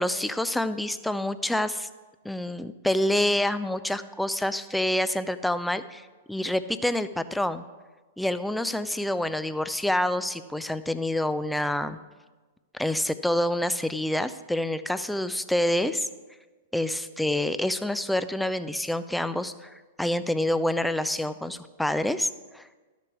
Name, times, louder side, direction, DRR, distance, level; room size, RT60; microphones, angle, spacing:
voice 1, 0.0-1.9 2.2-7.6 8.2-12.0 12.8-16.1 16.7-22.7, left 1 dB, 5° left, 12 dB, 0.4 m, -27 dB
12.5 x 6.7 x 4.7 m, 1.3 s
figure-of-eight pair, 105°, 0 cm